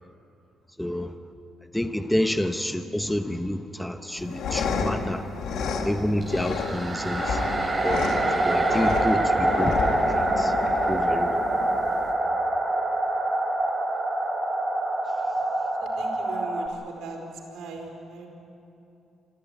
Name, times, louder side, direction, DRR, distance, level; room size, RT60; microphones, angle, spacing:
voice 1, 0.8-1.1 1.7-5.3 5.7-7.4 7.8-9.8 10.4-10.5 10.9-11.4, left 1 dB, 5° left, 8 dB, 1.0 m, -28 dB
sound 1, 4.1-12.1, left 5 dB, 75° left, 2.3 m, -30 dB
sound 2, 6.2-16.7, right 2 dB, 25° right, 3.4 m, -25 dB
voice 2, 15.8-18.3, right 4 dB, 80° right, 1 dB, 4.6 m, -40 dB
25.5 x 15.0 x 9.4 m, 2.8 s
cardioid pair, 90°, 0 cm